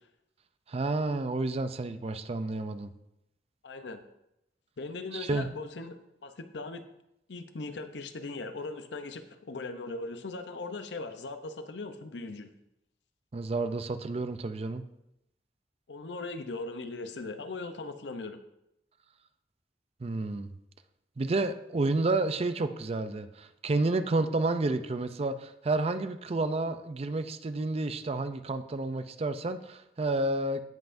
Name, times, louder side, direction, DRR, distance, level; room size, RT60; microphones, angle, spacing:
voice 1, 0.7-2.9 5.1-5.5 13.3-14.8 20.0-20.5 21.2-30.6, right 2 dB, 35° right, 10 dB, 0.5 m, -30 dB
voice 2, 3.6-4.0 4.8-6.8 7.3-12.5 15.9-18.4, left 3 dB, 85° left, 8 dB, 0.7 m, -39 dB
16.5 x 5.6 x 2.6 m, 0.83 s
head